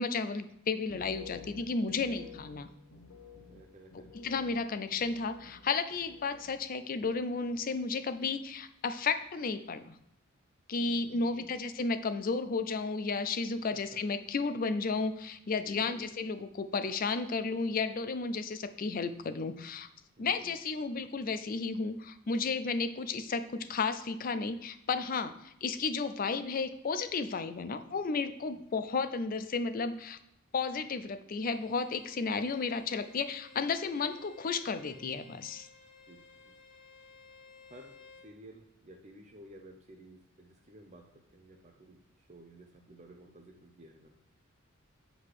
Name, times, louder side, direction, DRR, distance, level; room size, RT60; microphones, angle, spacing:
voice 1, 0.0-2.7 4.1-10.0 10.7-19.9 20.2-30.2 30.5-35.7, left 4 dB, 40° left, 11 dB, 0.4 m, -33 dB
sound 1, 0.8-6.6 6.9-7.6 7.9-8.4, left 5 dB, 85° left, 0.8 m, -52 dB
voice 2, 3.5-4.3 10.8-11.5 13.7-14.0 15.6-16.0 20.2-20.6 28.5-28.6 36.1-36.6 37.7-38.0 38.2-44.1, right 1 dB, 35° right, 2 dB, 0.6 m, -54 dB
Bowed string instrument, 31.4-38.3, left 5 dB, 60° left, 1.4 m, -57 dB
8.3 x 3.9 x 4.8 m, 0.77 s
head